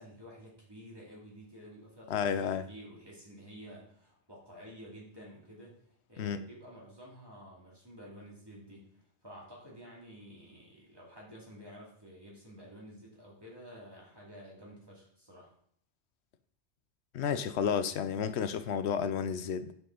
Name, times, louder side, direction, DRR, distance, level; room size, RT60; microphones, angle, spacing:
voice 1, 0.0-5.8 6.1-8.9 9.2-15.5, equal, 20° right, 2.5 m, -51 dB
voice 2, 2.1-2.6 6.2-6.4 17.1-19.7, left 7 dB, 75° left, 0.9 m, -31 dB
9.3 x 5.5 x 3.9 m
omnidirectional pair, 1.2 m